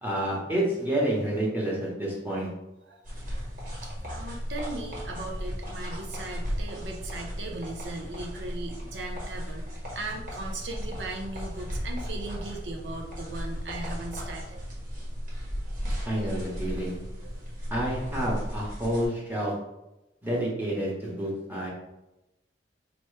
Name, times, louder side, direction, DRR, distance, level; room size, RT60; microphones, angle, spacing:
voice 1, 0.0-2.5 16.1-17.0 17.7-19.5 20.2-21.7, right 1 dB, 10° right, -5 dB, 1.1 m, -29 dB
sound 1, 3.0-19.1, equal, 50° right, 1.3 m, -36 dB
voice 2, 3.8-14.6 15.6-15.8 17.2-17.5, right 2 dB, 75° right, 2 dB, 0.7 m, -38 dB
4.3 x 3.0 x 3.3 m, 0.95 s
head